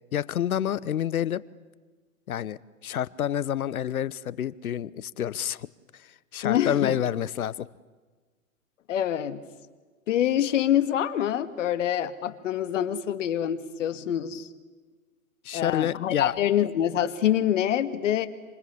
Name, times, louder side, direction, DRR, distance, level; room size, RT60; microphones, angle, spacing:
voice 1, 0.1-1.4 2.3-5.7 5.9-7.7 15.4-16.3, left 10 dB, 75° left, 20 dB, 1.1 m, -28 dB
voice 2, 6.4-7.0 8.9-9.4 10.1-14.5 15.5-18.3, left 10 dB, 60° left, 11 dB, 2.2 m, -26 dB
28.0 x 27.5 x 7.0 m, 1.4 s
hypercardioid pair, 135°, 43 cm